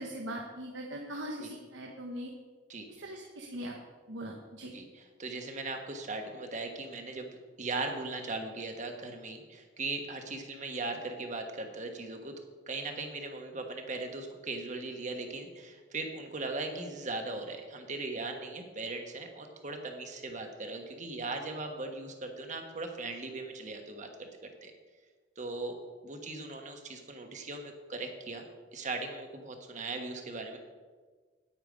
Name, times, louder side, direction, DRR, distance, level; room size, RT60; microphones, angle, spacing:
voice 1, 0.0-2.3 3.0-3.7 4.1-4.7, right 1 dB, 85° right, 0 dB, 1.1 m, -40 dB
voice 2, 4.7-7.3 7.6-12.4 12.7-24.7 25.4-25.8 26.0-28.4 28.7-30.6, right 3 dB, 40° right, 4 dB, 1.3 m, -39 dB
9.4 x 8.9 x 5.1 m, 1.4 s
head